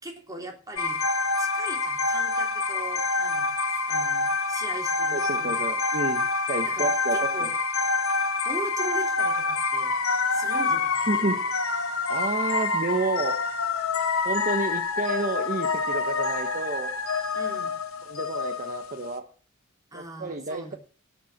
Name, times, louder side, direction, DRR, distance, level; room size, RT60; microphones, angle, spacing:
voice 1, 0.0-1.0 1.4-3.5 3.9-5.7 6.6-7.5 8.4-10.0 10.3-11.1 17.3-17.7 19.9-20.8, right 1 dB, 15° right, 2 dB, 3.2 m, -40 dB
sound 1, 0.8-19.1, left 3 dB, 90° left, 1.7 m, -27 dB
voice 2, 5.1-7.3 11.1-11.5 12.1-13.3 14.2-16.9 18.0-19.2 19.9-20.8, right 3 dB, 40° right, 6 dB, 1.1 m, -30 dB
17.5 x 5.9 x 7.4 m, 0.39 s
head